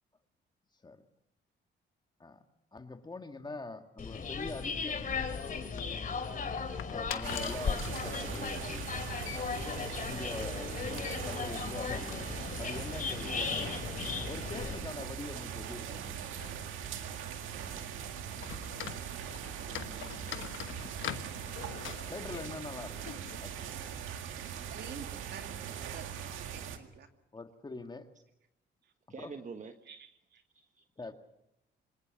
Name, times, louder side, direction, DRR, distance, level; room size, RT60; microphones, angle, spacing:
voice 1, 2.7-5.4 6.9-8.7 10.0-16.7 22.1-23.1 23.4-23.7 27.3-28.1 29.2-29.3 31.0-31.1, left 3 dB, 20° left, 6 dB, 2.0 m, -44 dB
sound 1, 4.0-14.8, left 5 dB, 45° left, 3.0 m, -37 dB
sound 2, 5.4-23.4, left 11 dB, 80° left, 1.3 m, -47 dB
sound 3, 7.2-26.8, right 8 dB, 85° right, 2.0 m, -41 dB
voice 2, 19.6-20.7 29.1-29.7 30.5-30.6, right 5 dB, 40° right, 7 dB, 1.4 m, -47 dB
voice 3, 24.3-25.5 25.8-27.1 29.9-30.4, right 6 dB, 60° right, 5 dB, 2.6 m, -50 dB
26.0 x 19.0 x 7.2 m, 0.81 s
cardioid pair, 90°, 20 cm